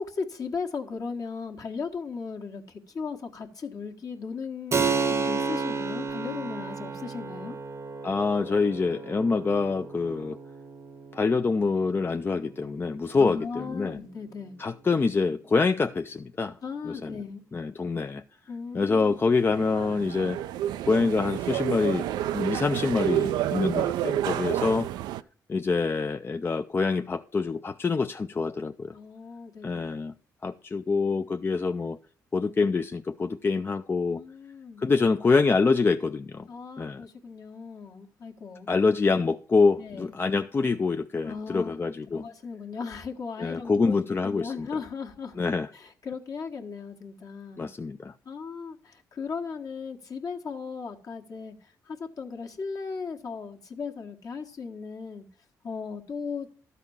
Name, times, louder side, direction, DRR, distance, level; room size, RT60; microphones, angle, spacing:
voice 1, 0.0-7.6 13.2-14.5 16.6-17.4 18.5-19.1 28.9-29.9 34.1-34.8 36.5-38.7 39.8-40.0 41.2-41.7 42.1-45.3 45.7-47.7 48.2-51.5 51.9-55.3 55.6-56.5, left 5 dB, 55° left, 1.5 m, -37 dB
Keyboard (musical), 4.7-14.9, right 5 dB, 40° right, 0.8 m, -33 dB
voice 2, 8.0-10.4 11.1-14.0 14.6-16.6 16.8-17.2 17.5-18.2 18.7-20.4 20.9-24.9 25.5-28.9 29.6-30.1 30.4-32.0 32.3-34.2 34.8-36.5 36.8-37.0 38.7-42.3 43.4-44.7 45.4-45.7 47.6-48.1, left 4 dB, 30° left, 0.4 m, -26 dB
sound 1, 19.2-25.2, right 12 dB, 85° right, 0.3 m, -29 dB
12.5 x 4.2 x 7.1 m
supercardioid pair, 65°, 7 cm